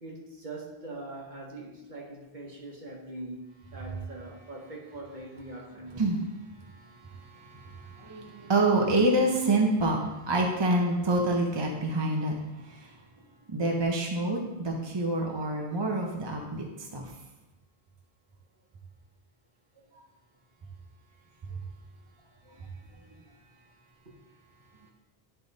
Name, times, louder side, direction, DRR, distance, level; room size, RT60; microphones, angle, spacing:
voice 1, 0.0-6.1 24.0-24.2, right 2 dB, 45° right, -1 dB, 1.2 m, -42 dB
voice 2, 6.6-13.0 13.5-17.1 22.5-22.7 23.0-23.1, right 2 dB, 30° right, 0 dB, 0.7 m, -27 dB
10.5 x 3.4 x 4.0 m, 1.0 s
omnidirectional pair, 1.1 m